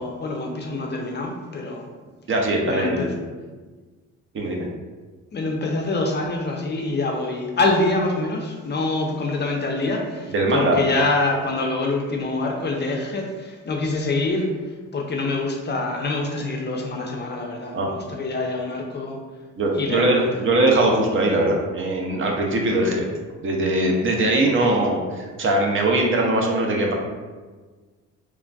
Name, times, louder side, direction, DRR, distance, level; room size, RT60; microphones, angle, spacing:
voice 1, 0.0-1.9 2.6-3.1 5.3-14.5 14.9-19.2 19.7-20.5, left 2 dB, 35° left, 1 dB, 0.4 m, -25 dB
voice 2, 2.3-3.1 4.3-4.6 10.3-10.8 17.7-17.9 19.6-23.1 23.4-26.9, right 2 dB, 45° right, 0 dB, 0.6 m, -21 dB
3.1 x 2.4 x 2.2 m, 1.4 s
cardioid pair, 90°, 30 cm